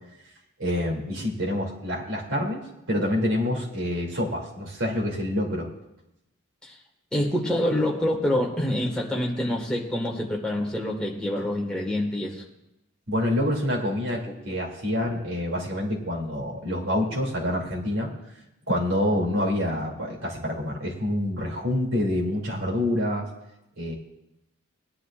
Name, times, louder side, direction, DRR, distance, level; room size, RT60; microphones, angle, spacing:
voice 1, 0.6-5.7 13.1-18.1 18.7-23.3 23.8-23.9, left 1 dB, 75° right, -2 dB, 2.8 m, -27 dB
voice 2, 7.1-12.4 14.1-14.6, left 1 dB, 5° left, -2 dB, 1.7 m, -27 dB
19.0 x 11.0 x 2.5 m, 0.89 s
head